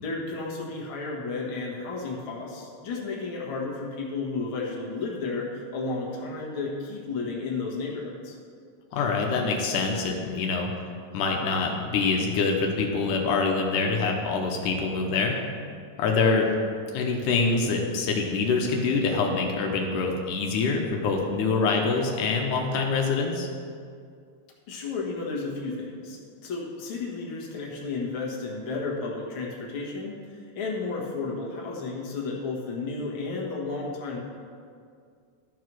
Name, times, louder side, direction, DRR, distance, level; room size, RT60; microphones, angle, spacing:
voice 1, 0.0-8.4 24.7-34.2, left 3 dB, 50° left, -3 dB, 2.1 m, -33 dB
voice 2, 8.9-10.7 11.1-15.4 16.0-16.6 16.9-23.5, left 4 dB, 85° left, 1 dB, 2.5 m, -25 dB
13.0 x 4.8 x 6.1 m, 2.2 s
omnidirectional pair, 3.5 m